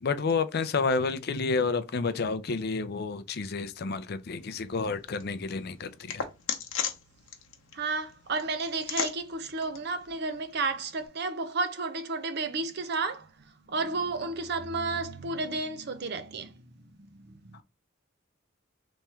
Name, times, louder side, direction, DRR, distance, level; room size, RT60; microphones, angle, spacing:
voice 1, 0.0-6.3, left 4 dB, 50° left, 0.5 m, -30 dB
sound 1, 4.3-11.1, left 7 dB, 80° left, 0.8 m, -39 dB
voice 2, 7.7-13.3 13.7-17.6, right 3 dB, 50° right, 0.5 m, -32 dB
3.5 x 3.1 x 4.3 m
head